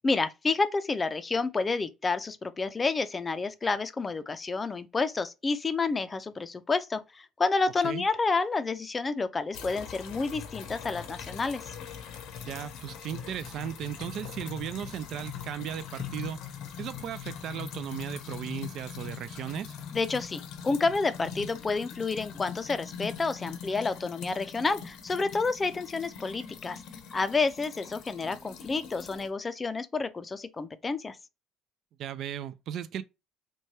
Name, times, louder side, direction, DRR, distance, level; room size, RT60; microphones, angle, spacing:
voice 1, 0.0-11.6 19.9-26.8 27.1-31.2, left 4 dB, 25° left, 0.4 m, -29 dB
sound 1, 9.5-29.3, left 7 dB, 75° left, 0.6 m, -42 dB
voice 2, 12.5-16.4 16.8-19.7 32.0-33.0, right 9 dB, 65° right, 0.3 m, -36 dB
3.1 x 2.2 x 2.7 m
supercardioid pair, 80°, 0 cm